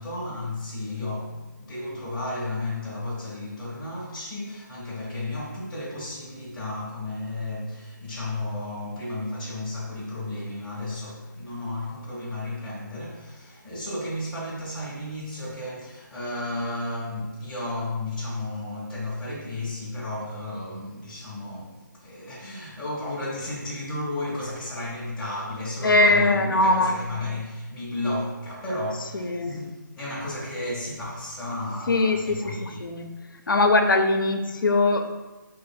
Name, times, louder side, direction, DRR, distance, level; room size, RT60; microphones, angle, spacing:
voice 1, 0.0-29.7 30.0-32.9, left 2 dB, 5° left, -8 dB, 0.7 m, -33 dB
voice 2, 25.8-27.0 29.1-29.6 31.9-33.1 33.5-35.1, left 2 dB, 85° left, 5 dB, 0.5 m, -21 dB
3.1 x 2.1 x 4.1 m, 1.2 s
figure-of-eight pair, 160°, 11 cm